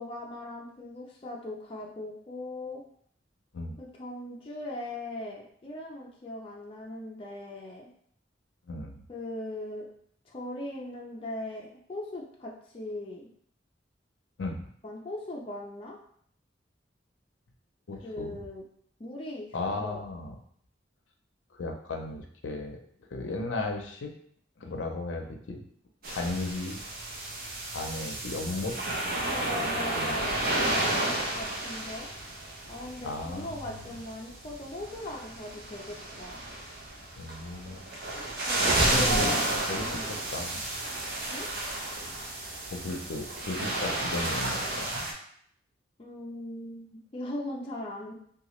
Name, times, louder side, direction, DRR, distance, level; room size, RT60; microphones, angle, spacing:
voice 1, 0.0-2.8 3.8-7.9 9.1-9.9 10.3-13.3 14.8-16.0 18.0-18.6 19.0-19.5 19.8-20.0 29.3-32.1 32.7-36.4 38.5-39.4 39.8-40.1 41.3-41.5 46.0-48.1, left 1 dB, 30° left, -3 dB, 0.4 m, -39 dB
voice 2, 8.7-9.0 14.4-14.6 17.9-18.4 19.5-20.3 21.5-22.8 23.1-24.1 24.6-25.6 26.1-26.8 27.7-28.8 30.0-30.3 33.0-33.8 37.2-37.8 38.8-39.3 39.7-40.7 42.7-45.0, left 2 dB, 80° left, 3 dB, 0.5 m, -35 dB
sound 1, 26.0-45.1, right 1 dB, 55° right, 0.6 m, -32 dB
2.9 x 2.3 x 3.0 m, 0.64 s
head